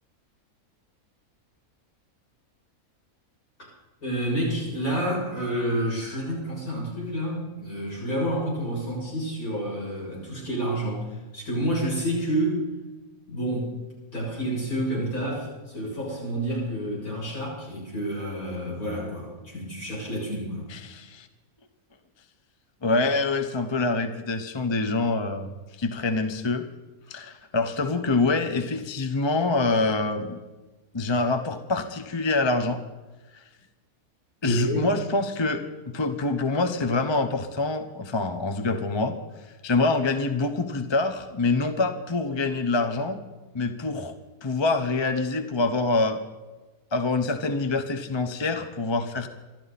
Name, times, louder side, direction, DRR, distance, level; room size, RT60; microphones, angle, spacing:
voice 1, 4.0-12.6 13.3-13.7 14.1-20.7 34.4-34.8, right 1 dB, 70° left, -5 dB, 7.7 m, -29 dB
voice 2, 20.7-21.3 22.8-25.5 25.8-26.7 27.1-30.4 30.9-32.8 33.3-33.4 34.4-39.2 39.6-43.2 43.5-44.1 44.4-46.2 46.9-49.3, left 3 dB, 20° left, 7 dB, 0.8 m, -25 dB
26.0 x 12.0 x 4.2 m, 1.2 s
omnidirectional pair, 1.6 m